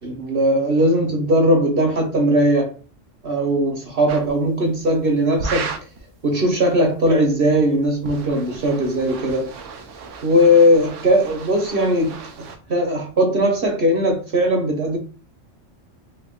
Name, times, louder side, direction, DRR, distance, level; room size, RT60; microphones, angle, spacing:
voice 1, 0.0-2.8 3.2-5.7 6.2-9.5 10.2-15.0, equal, 50° right, 1.1 m, -19 dB
sound 1, 4.1-4.3 5.4-6.0 7.8-12.6, right 4 dB, 75° right, 1.0 m, -34 dB
3.5 x 3.5 x 2.4 m
omnidirectional pair, 1.3 m